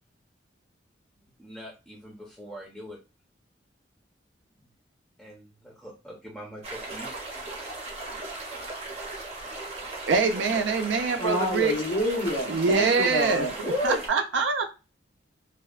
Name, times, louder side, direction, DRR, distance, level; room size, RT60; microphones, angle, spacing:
voice 1, 1.4-3.0 5.2-7.1, equal, 5° left, -4 dB, 0.5 m, -43 dB
sound 1, 6.6-14.1, right 2 dB, 35° right, 0.7 m, -37 dB
voice 2, 10.1-11.7 12.5-13.5 13.8-14.7, right 4 dB, 80° right, 5 dB, 0.4 m, -24 dB
voice 3, 11.2-14.0, equal, 85° left, -6 dB, 0.9 m, -27 dB
2.6 x 2.1 x 2.4 m, 0.29 s
head